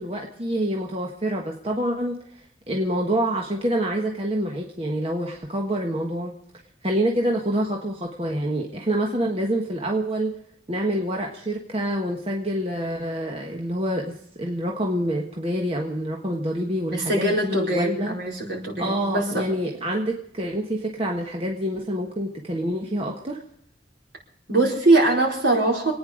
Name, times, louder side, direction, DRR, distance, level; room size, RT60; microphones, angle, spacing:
voice 1, 0.0-2.2 2.7-6.3 6.8-10.3 10.7-18.2 18.8-23.4, right 1 dB, 30° right, 0 dB, 1.3 m, -27 dB
voice 2, 16.9-19.5 24.5-25.9, right 2 dB, 65° right, -1 dB, 4.5 m, -22 dB
26.5 x 9.5 x 5.1 m, 0.69 s
head